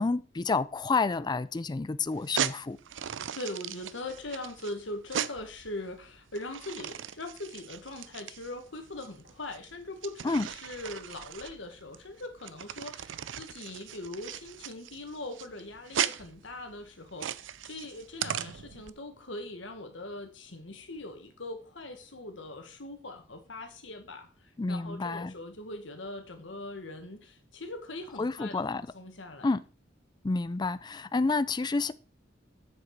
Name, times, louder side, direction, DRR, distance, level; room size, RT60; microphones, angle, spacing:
voice 1, 0.0-2.8 10.2-10.5 24.6-25.3 28.2-28.9 29.4-29.6 30.2-31.9, left 3 dB, 25° left, 0.4 m, -29 dB
sound 1, 2.1-18.9, right 9 dB, 85° right, 0.5 m, -38 dB
voice 2, 3.3-29.5, left 2 dB, 85° left, 1.8 m, -41 dB
8.0 x 6.8 x 4.8 m
head